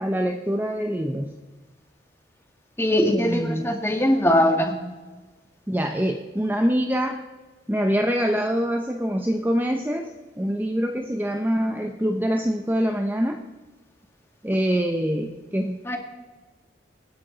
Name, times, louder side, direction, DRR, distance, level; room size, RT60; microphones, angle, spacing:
voice 1, 0.0-1.3 3.1-3.7 5.7-7.2 7.7-13.4 14.4-15.8, equal, 10° right, 4 dB, 0.6 m, -25 dB
voice 2, 2.8-4.7 15.9-16.0, equal, 15° left, 3 dB, 1.8 m, -21 dB
25.5 x 10.0 x 3.9 m, 1.3 s
head